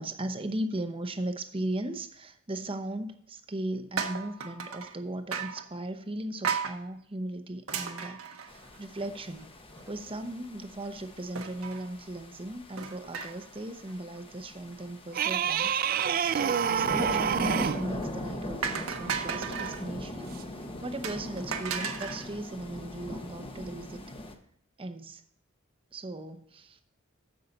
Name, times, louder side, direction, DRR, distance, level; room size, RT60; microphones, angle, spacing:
voice 1, 0.0-9.6 9.9-24.0 24.8-25.2 25.9-26.8, right 1 dB, 25° right, 8 dB, 0.8 m, -38 dB
sound 1, 4.0-5.0 5.3-5.7 6.4-6.8 7.7-9.0 9.4-9.5 9.8-9.9 11.3-11.9 12.8-13.6 13.9-14.2 17.7-18.1 18.6-19.8 21.0-22.3, right 6 dB, 85° right, 1.3 m, -35 dB
sound 2, 8.5-24.4, left 1 dB, 25° left, 1.1 m, -41 dB
sound 3, 15.1-17.9 20.3-20.4, right 8 dB, 45° right, 0.3 m, -27 dB
14.5 x 5.8 x 4.0 m, 0.63 s
head